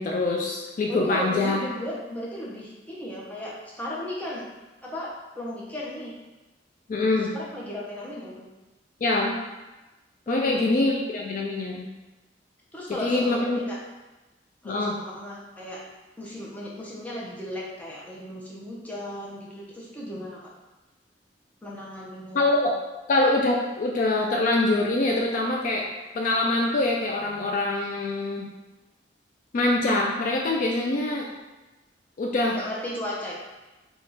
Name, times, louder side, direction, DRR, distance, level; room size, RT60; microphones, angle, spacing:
voice 1, 0.0-1.6 6.9-7.3 9.0-9.3 10.3-11.9 13.0-13.6 14.6-14.9 22.3-22.7 23.1-25.9 26.1-28.5 29.5-31.3 32.2-32.6, left 2 dB, 45° left, -1 dB, 0.3 m, -24 dB
voice 2, 0.9-4.5 4.8-6.1 7.1-8.5 10.3-10.7 12.7-13.8 14.6-15.8 16.2-20.5 21.6-22.4 32.6-33.3, left 1 dB, 10° left, -5 dB, 0.7 m, -36 dB
3.4 x 2.3 x 4.0 m, 1.1 s
head